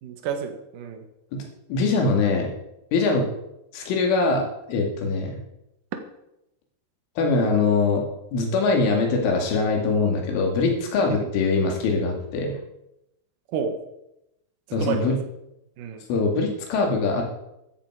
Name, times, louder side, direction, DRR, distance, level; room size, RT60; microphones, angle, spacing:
voice 1, 0.0-1.0 11.1-11.3 13.5-13.7 14.7-15.2 15.8-16.0, right 7 dB, 60° right, 6 dB, 2.4 m, -30 dB
voice 2, 1.3-2.5 2.9-3.3 3.7-5.3 7.2-12.6 14.7-15.2 16.1-17.3, left 3 dB, 90° left, 2 dB, 5.0 m, -23 dB
14.0 x 13.0 x 4.9 m, 0.87 s
omnidirectional pair, 5.4 m